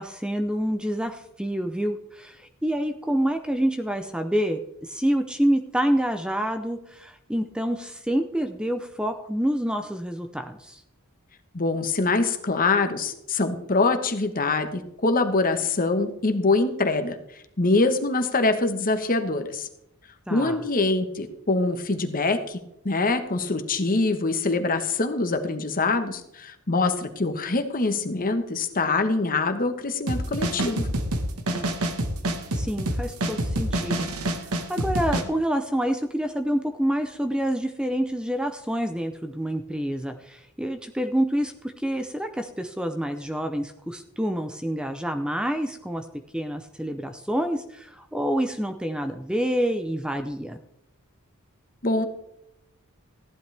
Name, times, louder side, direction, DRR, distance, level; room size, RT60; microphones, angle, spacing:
voice 1, 0.0-10.8 20.3-20.6 31.5-31.7 32.5-46.1 46.3-50.6, equal, 5° right, 6 dB, 0.6 m, -27 dB
voice 2, 11.5-17.2 17.6-19.7 20.3-22.6 22.8-30.9 51.8-52.1, left 3 dB, 40° left, 8 dB, 1.2 m, -24 dB
sound 1, 30.1-35.2, right 1 dB, 80° right, 1.5 m, -27 dB
15.0 x 11.0 x 3.4 m, 0.78 s
head